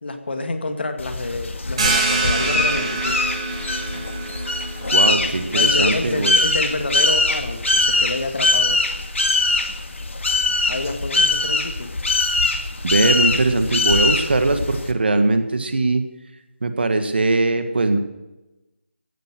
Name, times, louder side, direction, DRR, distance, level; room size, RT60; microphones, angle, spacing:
voice 1, 0.0-3.2 5.5-8.8 10.7-11.9, left 2 dB, 60° left, 6 dB, 2.0 m, -28 dB
sound 1, 1.0-14.9, left 2 dB, 80° left, 2.0 m, -22 dB
sound 2, 1.8-7.1, right 3 dB, 30° right, 4.1 m, -26 dB
voice 2, 4.9-6.3 12.8-16.0 16.6-18.0, right 2 dB, 55° right, 8 dB, 1.8 m, -20 dB
16.0 x 10.0 x 6.3 m, 1.0 s
figure-of-eight pair, 175°, 7 cm